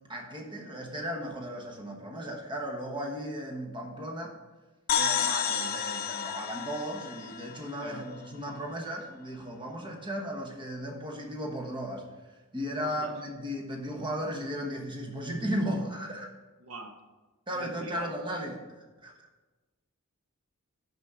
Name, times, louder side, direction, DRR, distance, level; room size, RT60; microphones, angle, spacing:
voice 1, 0.1-4.3 5.0-12.0 12.5-16.3 17.5-18.6 19.0-19.1, equal, 25° right, 2 dB, 1.1 m, -35 dB
sound 1, 4.9-8.5, left 8 dB, 45° left, 0.6 m, -31 dB
voice 2, 12.8-13.1 16.6-17.0 17.5-18.1, right 3 dB, 80° right, 5 dB, 0.9 m, -43 dB
6.1 x 6.0 x 6.8 m, 1.2 s
head